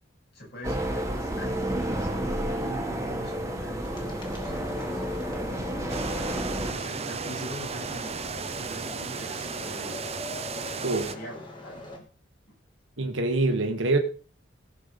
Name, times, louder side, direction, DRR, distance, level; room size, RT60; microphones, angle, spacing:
voice 1, 0.3-5.0 5.5-8.2 8.5-10.1 11.1-12.1 12.5-12.6, equal, 55° left, 8.0 m, -43 dB
sound 1, 0.6-6.7, right 1 dB, 15° right, 1.8 m, -31 dB
sound 2, 3.8-12.0, left 2 dB, 25° left, 2.8 m, -42 dB
sound 3, 5.9-11.1, right 5 dB, 35° right, 0.8 m, -34 dB
voice 2, 13.0-14.0, right 2 dB, 70° right, 1.5 m, -25 dB
17.0 x 5.9 x 5.3 m
head